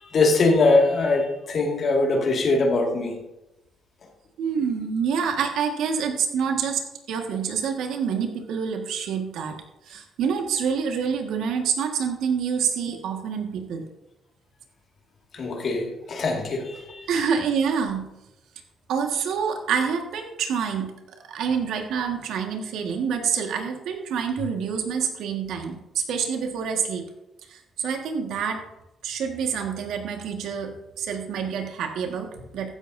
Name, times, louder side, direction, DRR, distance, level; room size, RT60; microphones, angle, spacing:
voice 1, 0.0-3.2 15.3-17.1, left 3 dB, 55° left, 0 dB, 2.1 m, -22 dB
voice 2, 4.4-6.8 7.1-9.5 9.9-13.8 17.1-18.1 18.9-27.0 27.5-28.6 29.0-32.8, right 6 dB, 80° right, 4 dB, 1.7 m, -27 dB
14.5 x 11.0 x 2.7 m, 0.92 s
cardioid pair, 90°, 0 cm